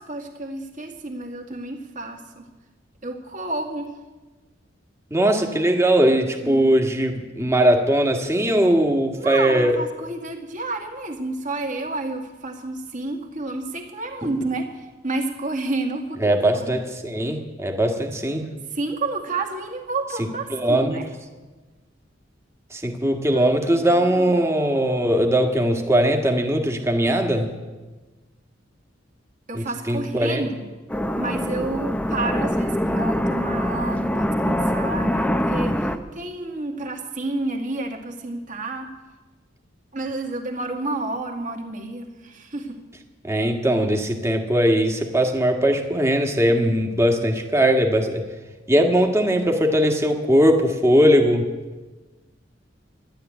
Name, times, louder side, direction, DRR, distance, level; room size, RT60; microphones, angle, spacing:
voice 1, 0.0-2.5 3.0-3.9 6.1-6.2 6.4-6.7 9.2-16.9 18.7-21.1 23.3-24.3 29.5-30.6 31.1-38.9 39.9-42.8, right 2 dB, 45° right, 1 dB, 2.2 m, -30 dB
voice 2, 5.1-9.7 16.2-18.4 20.5-21.0 22.7-27.5 29.5-30.4 43.2-48.2 48.7-51.4, equal, 15° right, 3 dB, 1.7 m, -20 dB
sound 1, 30.9-36.0, equal, 5° left, 0.8 m, -24 dB
12.5 x 12.0 x 9.4 m, 1.2 s
head